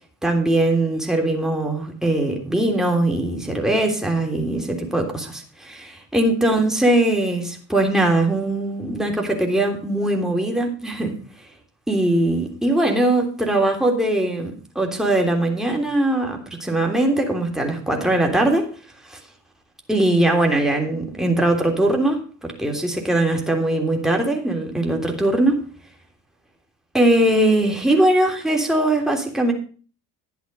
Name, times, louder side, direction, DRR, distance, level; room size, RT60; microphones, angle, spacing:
voice 1, 0.2-11.2 11.9-18.7 19.1-19.2 19.9-25.6 26.9-29.5, right 1 dB, ahead, 1 dB, 3.2 m, -21 dB
10.5 x 8.4 x 5.5 m, 0.40 s
hypercardioid pair, 55°, 44 cm